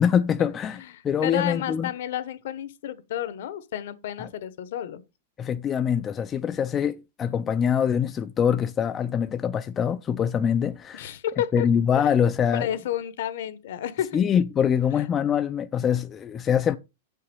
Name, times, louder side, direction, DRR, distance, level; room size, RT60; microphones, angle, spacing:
voice 1, 0.0-1.9 5.4-11.1 11.5-12.7 14.1-16.8, left 8 dB, 20° left, 0.4 m, -24 dB
voice 2, 0.8-5.0 6.4-6.6 10.9-11.7 12.5-14.2, left 11 dB, 65° left, 1.0 m, -31 dB
7.6 x 5.7 x 5.3 m
supercardioid pair, 160°, 0 cm